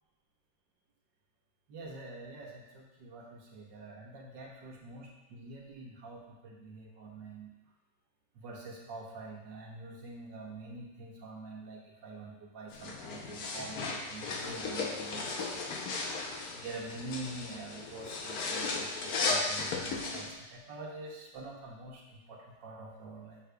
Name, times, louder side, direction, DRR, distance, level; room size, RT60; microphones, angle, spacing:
voice 1, 1.7-7.5 8.4-16.1 16.5-23.4, right 3 dB, 75° right, -1 dB, 1.5 m, -46 dB
sound 1, 12.7-20.3, left 3 dB, 65° left, 1.1 m, -35 dB
6.6 x 6.4 x 2.3 m, 1.0 s
omnidirectional pair, 2.1 m